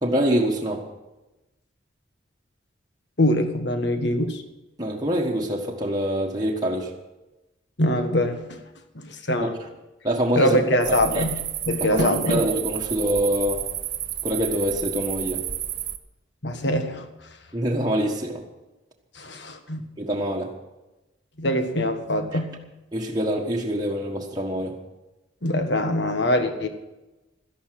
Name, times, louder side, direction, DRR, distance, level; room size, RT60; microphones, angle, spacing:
voice 1, 0.0-0.9 4.8-6.9 9.4-9.5 10.0-10.6 10.9-11.2 11.9-13.6 14.2-15.4 17.5-18.4 20.0-20.5 22.9-24.8, equal, 20° right, -2 dB, 1.4 m, -25 dB
voice 2, 3.2-4.4 7.8-8.6 8.9-9.5 10.3-12.5 16.4-17.1 19.1-19.8 21.4-22.7 25.4-26.7, left 1 dB, 60° left, 7 dB, 1.6 m, -23 dB
sound 1, 10.8-16.0, right 11 dB, 45° right, 0.9 m, -31 dB
13.0 x 11.0 x 7.6 m, 1.0 s
head